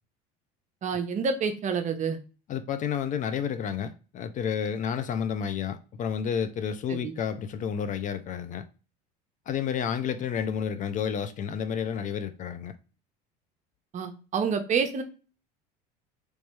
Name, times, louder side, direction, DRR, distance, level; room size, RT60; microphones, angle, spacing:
voice 1, 0.8-2.2 6.9-7.1 13.9-15.0, right 6 dB, 35° right, 0.7 m, -28 dB
voice 2, 2.5-8.6 9.5-12.7, left 7 dB, 40° left, 0.4 m, -30 dB
3.1 x 3.1 x 3.0 m
supercardioid pair, 95°, 21 cm